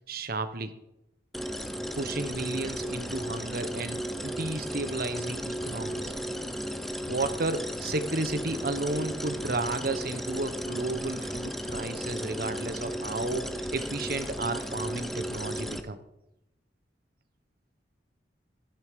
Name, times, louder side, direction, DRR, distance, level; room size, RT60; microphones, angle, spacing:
voice 1, 0.1-0.7 2.0-6.1 7.1-16.0, right 2 dB, 55° right, 10 dB, 1.1 m, -33 dB
sound 1, 1.3-15.8, equal, ahead, 0.7 m, -35 dB
14.5 x 10.5 x 5.2 m, 0.87 s
head